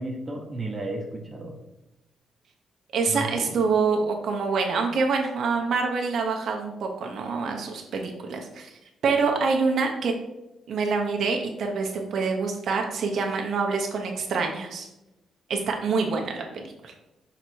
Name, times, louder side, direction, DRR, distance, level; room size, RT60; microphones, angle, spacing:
voice 1, 0.0-1.6 3.1-3.5, right 2 dB, 20° right, 0 dB, 0.9 m, -33 dB
voice 2, 2.9-8.7 9.0-10.1 10.7-14.9 15.5-16.9, right 4 dB, 55° right, 2 dB, 0.8 m, -26 dB
6.3 x 4.0 x 4.5 m, 0.95 s
cardioid pair, 170°, 0 cm